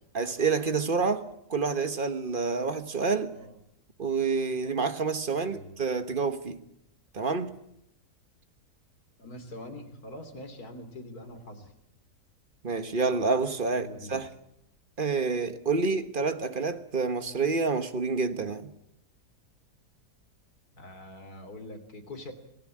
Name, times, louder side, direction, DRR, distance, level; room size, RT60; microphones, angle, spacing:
voice 1, 0.1-3.4 4.0-6.6 7.1-7.6 12.6-14.3 15.0-18.7, right 4 dB, 35° right, 1.5 m, -28 dB
voice 2, 5.4-5.7 9.2-11.7 13.7-14.3 20.8-22.3, left 1 dB, 70° left, 3.6 m, -43 dB
27.0 x 17.5 x 8.8 m
omnidirectional pair, 1.7 m